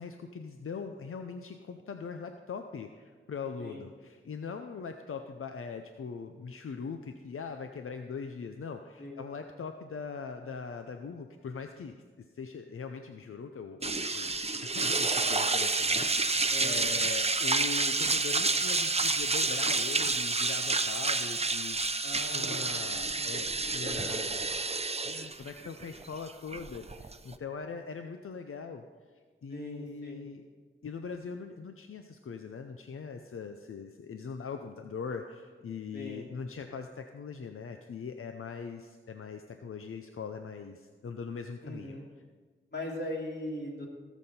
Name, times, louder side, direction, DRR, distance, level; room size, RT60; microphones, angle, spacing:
voice 1, 0.0-24.5 25.0-28.8 29.4-30.4 30.8-42.0, left 5 dB, 85° left, 6 dB, 0.6 m, -41 dB
sound 1, 13.8-27.3, right 3 dB, 30° right, 0.6 m, -29 dB
voice 2, 16.5-17.0 22.0-23.4 23.8-24.2 29.5-30.2 35.9-36.3 41.6-42.1 42.7-43.9, left 1 dB, 55° left, -2 dB, 2.9 m, -40 dB
17.5 x 7.2 x 4.3 m, 1.4 s
wide cardioid pair, 50°, 21 cm